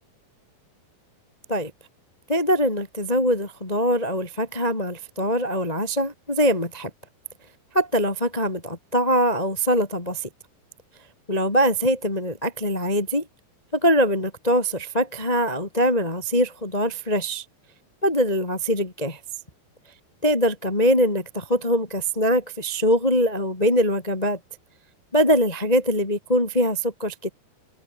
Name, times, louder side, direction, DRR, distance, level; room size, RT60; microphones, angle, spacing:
voice 1, 2.3-6.9 7.7-10.3 11.3-13.2 13.7-17.4 18.0-19.2 20.2-24.4 25.1-27.3, equal, 15° left, 1.3 m, -22 dB
omnidirectional pair, 5.0 m